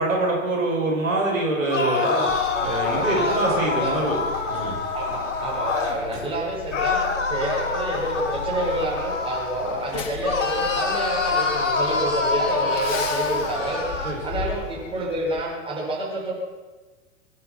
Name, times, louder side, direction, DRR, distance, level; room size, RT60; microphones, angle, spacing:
voice 1, 0.0-2.0 2.6-4.2 4.5-4.8 14.0-14.2, right 2 dB, 80° right, -2 dB, 4.8 m, -24 dB
sound 1, 1.6-6.0 6.7-9.9 10.2-14.2, left 4 dB, 65° left, 2.7 m, -26 dB
voice 2, 1.8-2.3 2.8-4.0 4.9-16.3, right 1 dB, 15° right, -4 dB, 5.7 m, -28 dB
Truck, 2.3-15.4, left 5 dB, 40° left, 2.1 m, -37 dB
23.5 x 10.0 x 5.9 m, 1.3 s
figure-of-eight pair, 95°, 39 cm